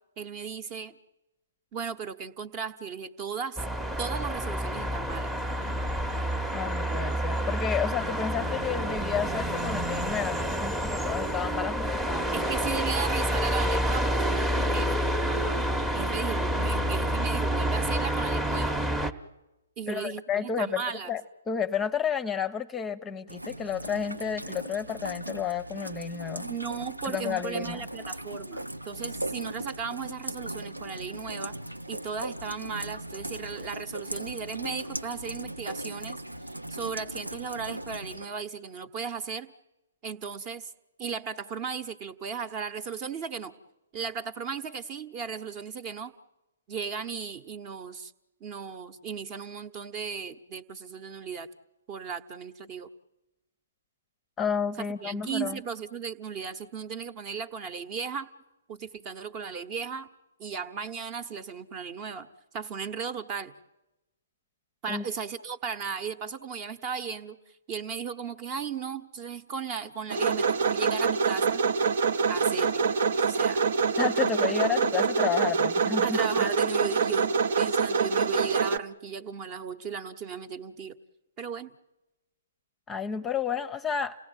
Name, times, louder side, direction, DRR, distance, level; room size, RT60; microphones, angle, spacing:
voice 1, 0.2-1.0 1.7-3.6 4.0-5.3 12.3-15.1 15.9-18.8 19.8-21.1 26.4-31.6 31.9-36.2 36.7-39.5 40.0-40.7 41.0-43.5 43.9-46.1 46.7-48.1 48.4-51.5 51.9-52.9 54.8-58.3 58.7-60.1 60.4-62.3 62.5-63.5 64.8-67.4 67.7-71.6 72.3-72.9 73.3-73.6 76.0-81.0 81.4-81.7, right 6 dB, 30° right, 14 dB, 1.1 m, -36 dB
sound 1, 3.6-19.1, equal, 10° right, 1.0 m, -28 dB
voice 2, 6.5-12.7 19.9-21.2 21.5-26.4 27.0-27.9 54.4-55.6 64.9-65.0 74.0-76.5 82.9-84.2, left 7 dB, 15° left, 13 dB, 0.8 m, -31 dB
Rain, 23.3-38.3, right 1 dB, 90° right, 0.8 m, -38 dB
sound 2, 70.1-78.8, right 5 dB, 55° right, 0.9 m, -25 dB
28.5 x 17.5 x 9.1 m, 1.0 s
figure-of-eight pair, 125°, 0 cm